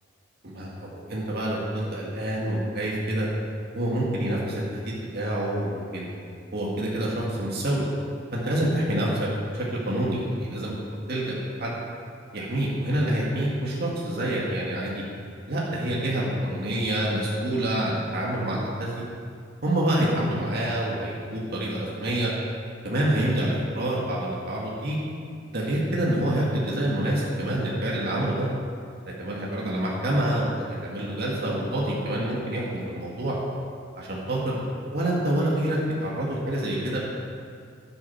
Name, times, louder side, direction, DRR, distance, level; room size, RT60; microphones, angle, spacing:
voice 1, 0.4-3.3 3.7-6.1 6.5-7.8 8.3-9.1 9.5-10.7 11.1-11.8 12.3-15.0 15.5-19.0 19.6-22.3 22.8-25.0 25.5-28.5 29.2-33.4 34.0-34.6 34.9-37.0, right 1 dB, 55° right, -4 dB, 2.0 m, -27 dB
10.5 x 8.9 x 5.9 m, 2.3 s
head